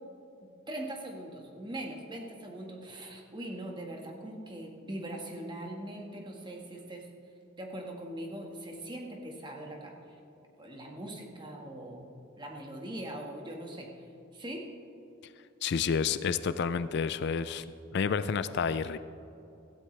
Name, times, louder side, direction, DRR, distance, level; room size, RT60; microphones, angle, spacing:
voice 1, 0.7-7.1 7.6-10.2 10.6-13.9 14.3-14.7, right 1 dB, 20° right, 1 dB, 1.6 m, -41 dB
voice 2, 15.6-17.6 17.9-19.0, left 6 dB, 55° left, 13 dB, 0.3 m, -29 dB
16.5 x 15.0 x 3.3 m, 2.8 s
head